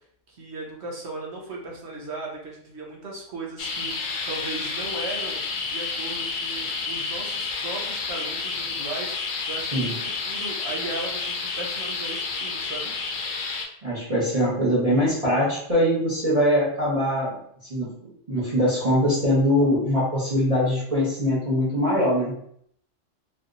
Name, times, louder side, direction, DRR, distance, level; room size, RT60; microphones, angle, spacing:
voice 1, 0.3-5.4 5.7-12.9, right 3 dB, 60° right, -2 dB, 1.0 m, -37 dB
sound 1, 3.6-13.7, left 4 dB, 85° left, 1.0 m, -30 dB
voice 2, 13.8-17.3 17.7-17.9 18.3-22.3, equal, 30° right, -9 dB, 1.2 m, -22 dB
3.3 x 2.7 x 2.5 m, 0.67 s
omnidirectional pair, 1.3 m